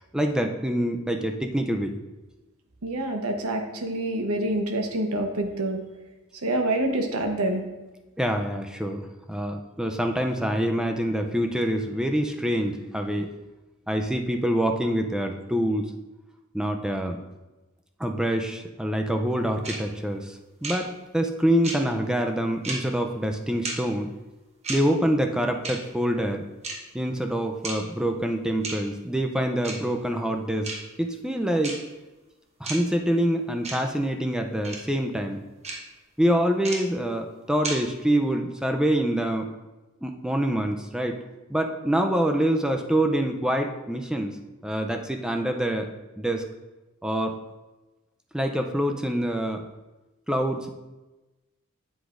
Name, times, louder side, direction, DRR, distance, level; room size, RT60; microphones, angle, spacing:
voice 1, 0.1-2.0 8.2-9.0 9.3-13.3 13.9-15.9 16.5-17.2 18.0-20.4 20.6-24.1 24.7-26.4 26.9-30.7 31.0-31.8 32.6-35.4 36.2-39.4 40.0-41.2 41.5-44.3 44.6-45.9 46.2-46.4 47.0-47.3 48.3-49.6 50.3-50.7, right 1 dB, 5° right, 4 dB, 0.4 m, -25 dB
voice 2, 2.8-5.8 6.4-7.6, right 1 dB, 90° right, 4 dB, 1.0 m, -26 dB
clock ticking, 19.6-19.8 20.6-20.8 21.6-21.8 22.6-22.8 23.6-23.8 24.6-24.8 25.6-25.8 26.6-26.7 27.6-27.8 28.6-28.8 29.6-29.8 30.6-30.8 31.6-31.8 32.6-32.8 33.6-33.8 34.6-34.8 35.6-35.8 36.6-36.8 37.6-37.8, right 3 dB, 30° right, 1.2 m, -31 dB
8.1 x 8.0 x 2.5 m, 1.1 s
head